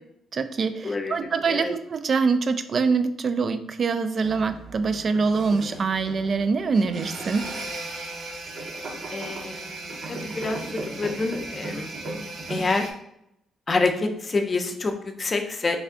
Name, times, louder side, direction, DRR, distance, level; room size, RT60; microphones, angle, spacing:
voice 1, 0.3-7.4, right 4 dB, 45° right, 10 dB, 0.3 m, -24 dB
voice 2, 0.8-1.1 1.5-1.7 9.1-11.9 12.5-12.9 13.7-15.8, left 3 dB, 30° left, 5 dB, 0.5 m, -27 dB
sound 1, 4.2-12.9, right 2 dB, 60° right, 0.7 m, -36 dB
3.5 x 2.4 x 3.6 m, 0.77 s
cardioid pair, 90°, 0 cm